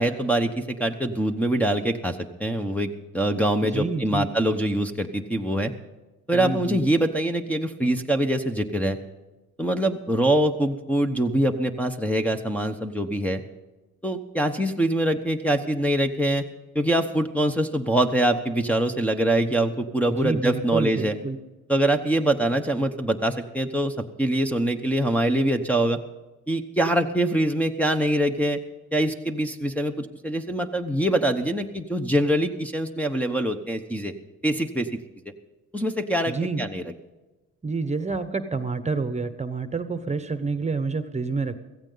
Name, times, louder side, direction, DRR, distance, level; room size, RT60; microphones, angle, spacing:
voice 1, 0.0-5.7 6.3-9.0 9.6-13.4 14.0-16.4 16.7-21.1 21.7-26.0 26.5-28.6 28.9-34.1 34.4-34.9 35.7-36.8, right 1 dB, 5° left, 1 dB, 1.0 m, -24 dB
voice 2, 3.7-4.3 6.3-6.8 20.1-21.4 36.3-36.6 37.6-41.6, right 4 dB, 20° right, 10 dB, 1.1 m, -28 dB
16.0 x 15.0 x 4.0 m, 1.1 s
cardioid pair, 90°, 30 cm